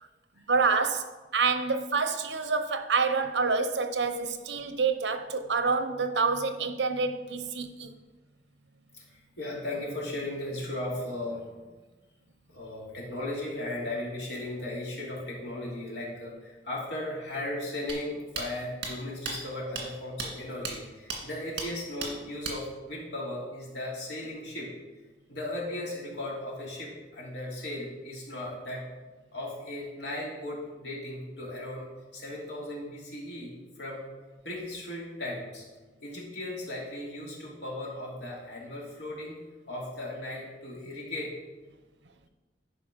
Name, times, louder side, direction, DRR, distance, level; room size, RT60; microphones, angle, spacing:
voice 1, 0.5-1.1 1.3-7.9, right 4 dB, 85° right, 9 dB, 0.8 m, -27 dB
voice 2, 8.9-11.6 12.5-24.7 25.3-28.8 29.3-31.9 32.1-34.1 34.4-35.7 36.0-39.4 39.7-41.3, left 1 dB, 75° left, -4 dB, 2.9 m, -36 dB
sound 1, 17.9-18.0 18.4-18.5 18.8-18.9 19.3-19.4 19.8-19.9 20.2-20.3 20.7-20.8 21.1-21.2 21.6-21.7 22.0-22.1 22.4-22.6, right 4 dB, 65° right, 2.0 m, -33 dB
11.0 x 5.1 x 5.3 m, 1.3 s
head